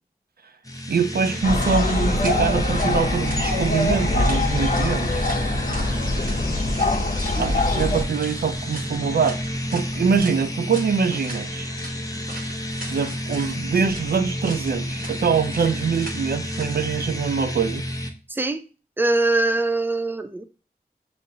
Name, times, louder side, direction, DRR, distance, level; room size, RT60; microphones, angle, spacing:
sound 1, 0.6-18.1, equal, 20° left, 0.7 m, -30 dB
voice 1, 0.9-5.3 7.4-9.4 9.7-11.7 12.9-17.8, right 6 dB, 80° right, 0.4 m, -24 dB
sound 2, 1.2-17.1, right 1 dB, 60° right, 1.1 m, -41 dB
sound 3, 1.4-8.0, left 2 dB, 60° left, 0.7 m, -23 dB
voice 2, 18.3-18.6 19.0-20.4, right 2 dB, 15° right, 0.4 m, -22 dB
6.8 x 2.5 x 2.8 m
wide cardioid pair, 40°, 16 cm